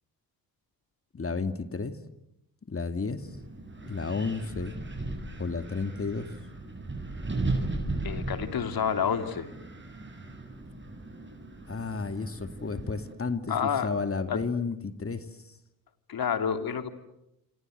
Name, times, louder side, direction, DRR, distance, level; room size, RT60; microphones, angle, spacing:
voice 1, 1.1-2.0 2.7-3.3 3.8-4.8 5.4-6.3 11.7-15.3, left 4 dB, 30° left, 9 dB, 2.4 m, -32 dB
Wind, 3.2-13.1, right 2 dB, 25° right, 7.6 m, -37 dB
voice 2, 8.0-9.5 13.5-13.9 14.3-14.4 16.1-16.9, left 7 dB, 55° left, 8 dB, 3.1 m, -29 dB
27.0 x 27.0 x 8.0 m, 0.83 s
hypercardioid pair, 50°, 42 cm